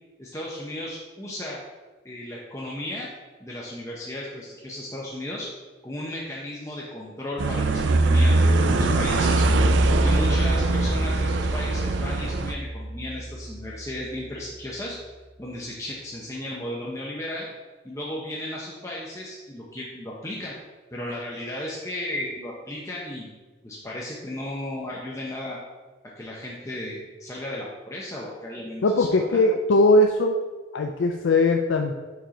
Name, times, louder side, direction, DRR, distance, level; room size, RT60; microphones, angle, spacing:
voice 1, 0.2-1.6 2.0-3.1 3.4-5.5 5.8-9.4 9.9-15.0 15.4-17.5 17.8-20.6 20.9-23.3 23.6-25.6 26.2-29.4, left 1 dB, 15° left, -4 dB, 0.6 m, -35 dB
sound 1, 7.4-12.5, right 3 dB, 75° right, 0.4 m, -23 dB
sound 2, 8.7-14.0, right 1 dB, 40° right, 1.5 m, -25 dB
voice 2, 28.8-30.4 30.7-31.9, left 2 dB, 75° left, 4 dB, 0.4 m, -20 dB
4.8 x 4.3 x 5.1 m, 1.3 s
head